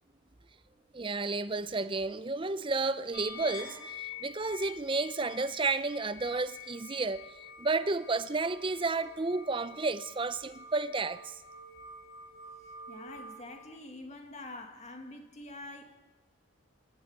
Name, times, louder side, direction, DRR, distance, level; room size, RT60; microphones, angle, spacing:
voice 1, 0.9-7.3 7.6-11.4, right 3 dB, 25° right, 0.6 m, -32 dB
sound 1, 3.1-13.5, left 4 dB, 55° left, 7.9 m, -48 dB
voice 2, 12.9-16.0, left 2 dB, 35° left, 2.1 m, -46 dB
25.5 x 13.0 x 8.9 m
head